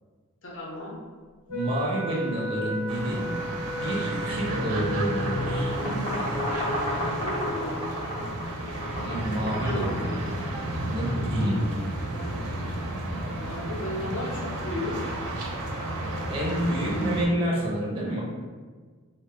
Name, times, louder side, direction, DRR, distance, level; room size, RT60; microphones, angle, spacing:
voice 1, 0.4-0.9 7.2-7.8 9.6-10.1 12.0-12.4 13.3-15.1 16.7-17.4, left 1 dB, 60° left, -4 dB, 0.7 m, -35 dB
Wind instrument woodwind instrument, 1.5-5.9, right 1 dB, 85° left, 0.9 m, -34 dB
voice 2, 1.5-3.2 3.8-5.7 9.0-10.1 10.9-11.6 16.0-18.2, equal, 25° right, -4 dB, 0.5 m, -28 dB
sound 1, 2.9-17.3, right 1 dB, 85° right, 0.5 m, -32 dB
sound 2, 5.1-10.8, left 1 dB, 25° left, 0.6 m, -32 dB
2.0 x 2.0 x 3.4 m, 1.5 s
head